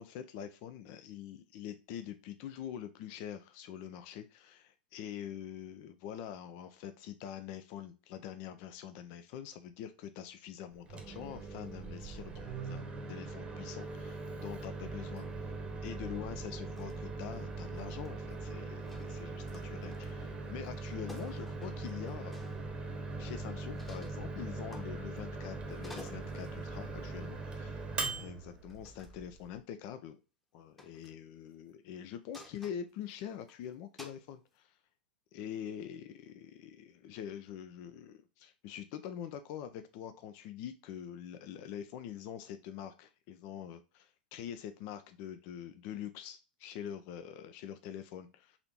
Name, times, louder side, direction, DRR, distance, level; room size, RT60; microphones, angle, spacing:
voice 1, 0.0-15.5 15.8-22.5 23.2-27.8 28.2-30.2 30.5-34.8 35.3-48.6, left 9 dB, 45° left, 0.4 m, -45 dB
Microwave oven, 10.8-29.6, right 3 dB, 20° right, 0.9 m, -41 dB
sound 1, 16.8-17.0 17.3-18.4 18.8-20.2 20.6-20.8 21.1-22.6 23.7-24.2 24.7-25.4 25.7-26.6 27.7-27.9 28.7-29.2 30.8-31.2 32.3-33.5 34.0-34.2, left 1 dB, 5° left, 0.9 m, -54 dB
4.1 x 2.8 x 2.9 m
figure-of-eight pair, 95°, 5 cm